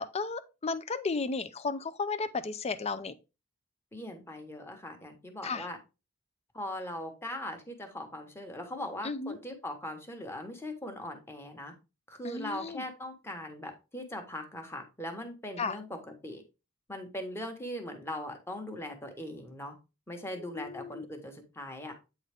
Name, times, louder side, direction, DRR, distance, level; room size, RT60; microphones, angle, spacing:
voice 1, 0.0-3.1 5.4-5.7 9.0-9.4 12.2-12.8 15.6-15.8 20.5-21.1, left 4 dB, 30° left, 0.5 m, -34 dB
voice 2, 3.9-5.8 6.5-11.7 12.1-16.0 16.2-16.4 16.9-19.7 20.1-21.9, left 1 dB, 10° left, 1.1 m, -40 dB
8.5 x 3.9 x 3.4 m
head